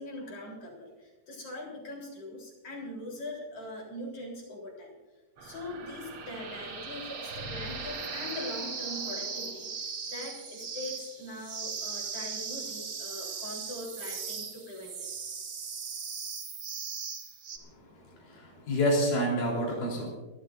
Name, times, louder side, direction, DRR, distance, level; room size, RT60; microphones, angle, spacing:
voice 1, 0.0-4.9 5.4-15.3, left 1 dB, 45° left, -1 dB, 4.7 m, -42 dB
sound 1, 5.4-17.6, right 5 dB, 50° right, 2.1 m, -38 dB
voice 2, 17.7-20.1, equal, 75° left, -2 dB, 5.4 m, -29 dB
29.5 x 13.0 x 2.6 m, 1.2 s
omnidirectional pair, 3.8 m